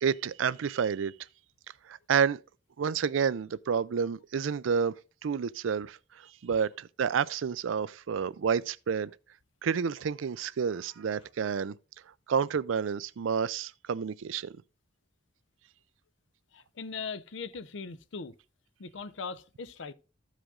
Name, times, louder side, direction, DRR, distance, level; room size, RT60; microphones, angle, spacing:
voice 1, 0.0-1.1 1.9-2.4 2.8-4.9 5.2-9.1 9.6-11.8 12.3-14.5, right 6 dB, 90° right, 0.4 m, -29 dB
voice 2, 16.5-18.4 18.8-19.9, left 5 dB, 70° left, 0.6 m, -40 dB
13.5 x 5.0 x 3.7 m
head